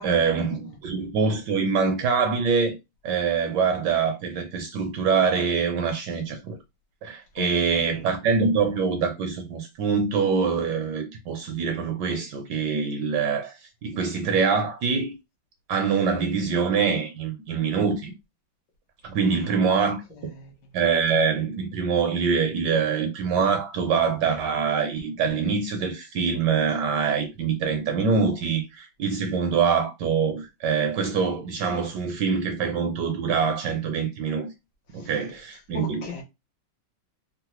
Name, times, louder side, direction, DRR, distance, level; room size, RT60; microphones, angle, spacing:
voice 1, 0.0-2.7 3.0-6.6 7.0-13.6 13.8-15.1 15.7-18.1 19.0-20.0 20.7-34.5 34.9-36.2, right 5 dB, 70° right, 1.1 m, -24 dB
voice 2, 7.4-7.9 19.2-19.7 20.1-20.5 34.9-35.1 35.7-36.2, left 5 dB, 65° left, 1.2 m, -38 dB
3.7 x 2.0 x 2.9 m
omnidirectional pair, 2.2 m